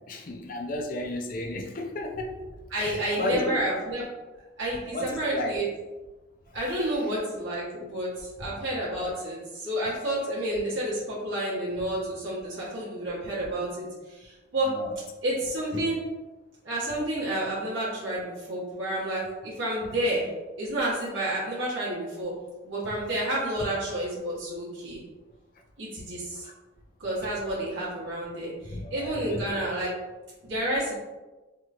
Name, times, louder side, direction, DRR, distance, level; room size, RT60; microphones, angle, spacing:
voice 1, 0.1-2.4 2.8-3.7 4.9-5.6 8.4-8.5 14.7-15.0 15.7-15.8 26.4-26.5 28.7-29.6, left 1 dB, 45° left, 2 dB, 0.4 m, -33 dB
voice 2, 2.7-4.1 4.6-5.7 6.5-14.7 15.2-16.0 16.6-20.3 20.6-22.3 22.6-25.0 25.8-26.5 27.0-29.9 30.4-30.9, right 1 dB, 90° right, -8 dB, 1.1 m, -30 dB
3.1 x 2.9 x 2.4 m, 1.2 s
head